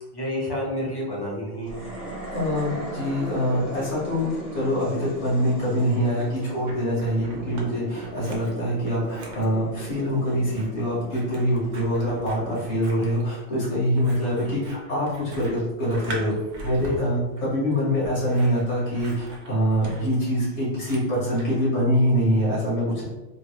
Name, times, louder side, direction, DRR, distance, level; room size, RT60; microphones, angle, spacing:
voice 1, 0.1-1.8 14.2-14.6, equal, 30° left, -4 dB, 0.5 m, -30 dB
sound 1, 1.6-13.0, right 1 dB, 45° right, 0.9 m, -38 dB
voice 2, 2.3-16.3 16.6-23.0, equal, 65° left, -7 dB, 1.8 m, -24 dB
Scissors, 6.1-7.7 8.0-21.6, right 2 dB, 70° right, 1.0 m, -43 dB
3.8 x 2.2 x 2.9 m, 1.1 s
omnidirectional pair, 1.2 m